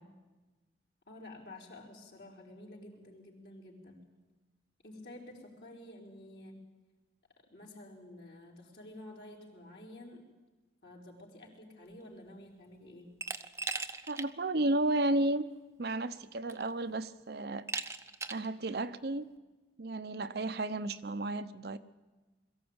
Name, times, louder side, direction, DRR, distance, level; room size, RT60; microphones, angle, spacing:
voice 1, 1.1-4.0 4.8-6.6 7.5-10.2 10.8-13.1, left 1 dB, 65° left, -1 dB, 4.4 m, -50 dB
Glass, 13.2-14.3 14.7-14.8 15.9-16.0 16.5-16.9 17.7-18.5, right 4 dB, 15° right, 0.7 m, -38 dB
voice 2, 14.1-15.4 15.8-17.6 18.3-19.2 19.8-21.8, right 2 dB, 60° right, 10 dB, 0.8 m, -32 dB
22.0 x 14.5 x 8.8 m, 1.2 s
head